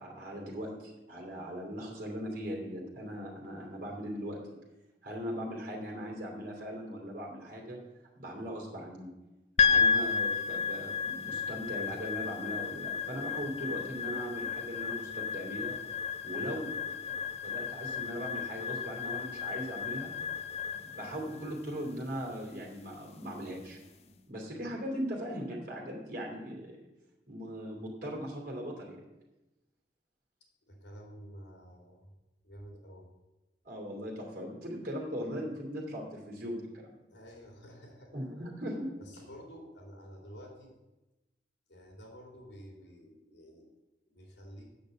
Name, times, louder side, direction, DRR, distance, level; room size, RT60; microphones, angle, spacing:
voice 1, 0.0-4.4 5.0-7.8 8.2-9.1 9.6-15.7 16.2-17.1 17.4-20.1 20.8-23.8 24.0-26.9 27.3-29.0 33.6-37.0 38.1-38.9, equal, 45° right, -2 dB, 2.9 m, -39 dB
sound 1, 9.6-23.9, left 6 dB, 35° left, 0.5 m, -33 dB
voice 2, 30.7-32.1 32.4-33.1 37.1-38.1 39.0-40.7 41.7-43.7 44.1-44.7, equal, 80° left, 1 dB, 2.9 m, -50 dB
8.6 x 6.6 x 7.8 m, 1.0 s
head